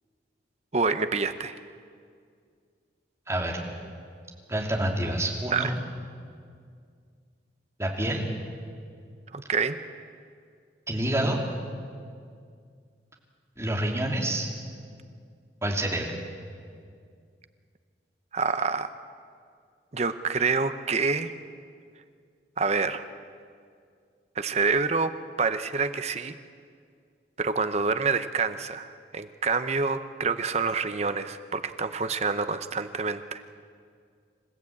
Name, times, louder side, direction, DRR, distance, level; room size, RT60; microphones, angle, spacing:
voice 1, 0.7-1.6 5.5-5.7 9.3-9.8 18.3-18.9 19.9-21.3 22.6-23.0 24.4-25.1 25.4-26.3 27.4-33.4, right 4 dB, 35° right, 10 dB, 0.7 m, -27 dB
voice 2, 3.3-3.6 4.5-5.7 7.8-8.2 10.9-11.4 13.6-14.5 15.6-16.1, right 1 dB, 15° right, -1 dB, 2.7 m, -27 dB
27.0 x 15.5 x 8.6 m, 2.2 s
head